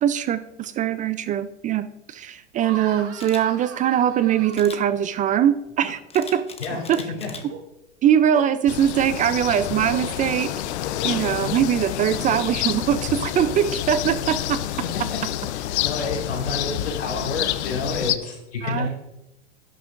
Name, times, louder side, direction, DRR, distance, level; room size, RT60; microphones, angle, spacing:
voice 1, 0.0-6.5 6.9-7.0 8.0-10.5 11.0-14.6 18.6-18.9, right 10 dB, 25° right, 14 dB, 0.3 m, -22 dB
sound 1, 2.6-5.2 5.7-6.0 6.5-6.9 7.3-7.6 8.3-8.5 9.1-9.3 9.9-10.0 11.0-11.3 12.1-12.5, right 7 dB, 40° right, 1.6 m, -39 dB
Camera, 3.2-3.4 4.5-4.8 6.1-7.4 7.9-8.2, left 5 dB, 15° left, 1.2 m, -40 dB
voice 2, 6.6-7.3 15.1-15.2 15.5-18.9, left 3 dB, 90° left, 0 dB, 3.9 m, -29 dB
sound 2, 8.7-18.2, left 13 dB, 65° left, 0.7 m, -28 dB
11.5 x 11.0 x 2.5 m, 0.90 s
hypercardioid pair, 100°, 36 cm